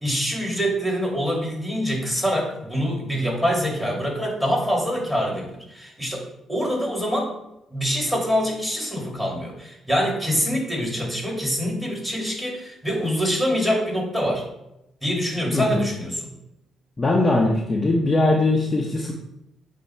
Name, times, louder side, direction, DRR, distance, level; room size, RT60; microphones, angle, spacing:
voice 1, 0.0-7.3 7.7-14.4 15.0-16.3, equal, 5° right, -2 dB, 2.5 m, -25 dB
voice 2, 15.5-15.8 17.0-19.1, left 2 dB, 25° left, -1 dB, 0.8 m, -20 dB
8.2 x 2.7 x 4.5 m, 0.84 s
cardioid pair, 90°, 0 cm